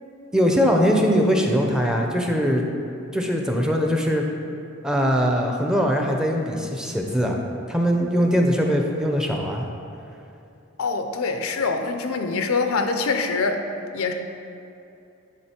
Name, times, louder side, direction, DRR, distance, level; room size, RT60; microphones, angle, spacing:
voice 1, 0.3-2.6 3.1-4.3 4.8-7.4 7.7-9.6, equal, 5° right, 1 dB, 0.5 m, -21 dB
voice 2, 10.8-13.6 13.9-14.1, left 4 dB, 90° left, 6 dB, 0.6 m, -24 dB
9.9 x 3.9 x 4.4 m, 2.7 s
head